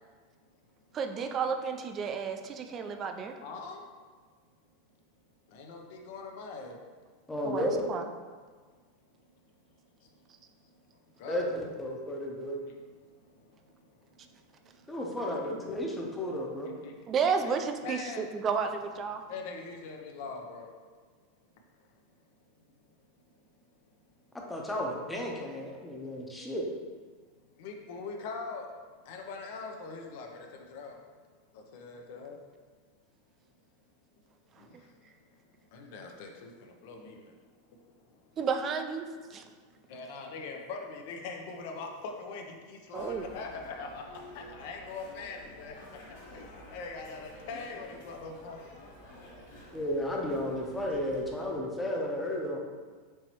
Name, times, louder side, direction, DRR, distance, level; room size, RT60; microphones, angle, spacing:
voice 1, 0.9-3.4 7.4-8.0 17.1-19.2 34.7-34.8 38.4-39.0 39.3-39.4 42.9-43.3, right 6 dB, 35° right, 6 dB, 0.3 m, -32 dB
voice 2, 3.4-3.8 5.5-6.8 11.2-11.6 15.2-15.6 16.7-16.9 17.4-17.5 17.8-18.3 19.3-20.7 27.6-28.7 29.1-31.0 31.7-32.4 35.7-36.5 36.8-37.2 38.7-38.8 39.9-42.4 42.7-45.7 46.3-46.4 46.7-48.7, left 4 dB, 65° left, 2 dB, 0.6 m, -42 dB
voice 3, 7.3-7.8 11.3-12.6 14.9-16.7 24.3-26.7 49.7-52.6, left 1 dB, 10° left, -1 dB, 0.7 m, -33 dB
sound 1, 42.9-51.5, left 1 dB, 80° left, 1.1 m, -50 dB
4.4 x 3.0 x 2.9 m, 1.5 s
supercardioid pair, 120°, 0 cm